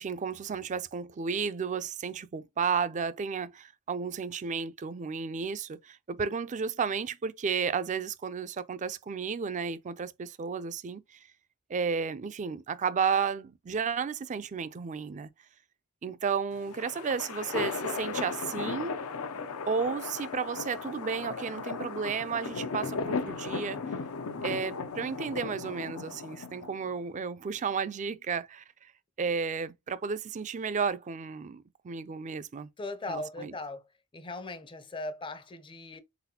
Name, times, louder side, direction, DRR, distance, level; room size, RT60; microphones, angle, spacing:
voice 1, 0.0-11.0 11.7-15.3 16.0-19.0 19.7-23.8 24.4-28.9 29.2-32.7 33.1-33.5, right 6 dB, 35° right, 0.4 m, -33 dB
sound 1, 16.5-27.0, left 4 dB, 80° left, 0.6 m, -36 dB
voice 2, 32.8-33.8 34.1-36.0, left 2 dB, 25° left, 0.5 m, -38 dB
4.0 x 4.0 x 2.8 m
head